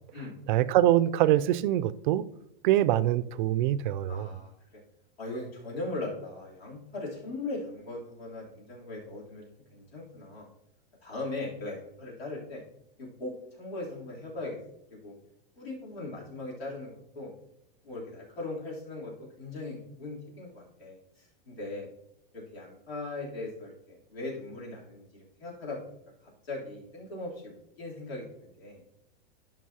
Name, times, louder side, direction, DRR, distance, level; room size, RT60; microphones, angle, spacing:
voice 1, 0.5-2.2 2.6-4.3, right 13 dB, 55° right, 0.4 m, -24 dB
voice 2, 4.1-4.5 5.2-9.4 9.7-10.5 11.0-12.6 13.0-14.6 15.0-15.1 15.6-17.3 17.8-21.9 22.3-25.8 26.4-28.8, left 2 dB, 90° left, 3.4 m, -39 dB
12.0 x 5.5 x 2.8 m
hypercardioid pair, 135°, 29 cm